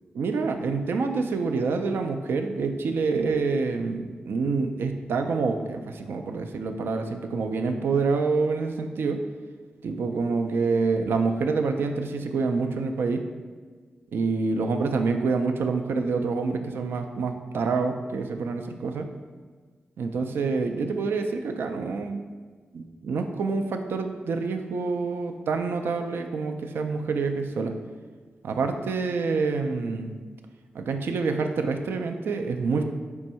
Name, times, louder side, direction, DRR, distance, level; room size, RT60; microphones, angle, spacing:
voice 1, 0.1-9.2 9.8-13.2 14.1-19.1 20.0-22.2 22.7-27.8 28.4-30.2 30.7-32.8, right 4 dB, 75° right, 5 dB, 0.4 m, -27 dB
4.6 x 2.6 x 4.2 m, 1.5 s
supercardioid pair, 45°, 4 cm